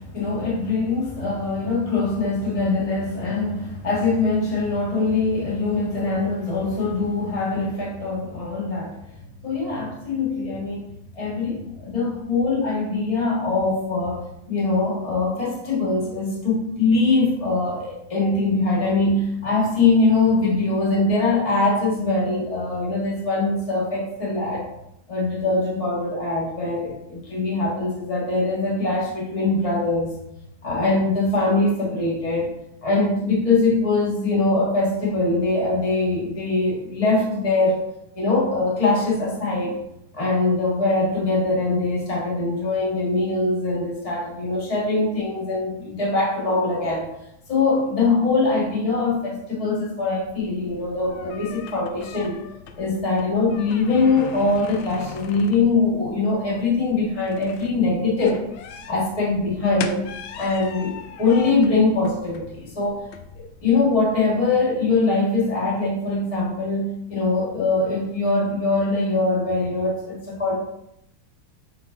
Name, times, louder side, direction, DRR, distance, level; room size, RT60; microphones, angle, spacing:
voice 1, 0.0-9.0 9.4-14.2 14.5-24.7 25.1-30.1 30.6-32.5 32.8-37.8 38.1-39.8 40.1-47.0 47.5-52.4 52.8-58.4 58.9-60.1 60.4-63.0 63.3-70.6, left 3 dB, 20° left, -5 dB, 1.5 m, -22 dB
sound 1, 50.2-64.1, left 7 dB, 75° left, 1.3 m, -40 dB
5.2 x 4.8 x 3.9 m, 0.82 s
omnidirectional pair, 2.3 m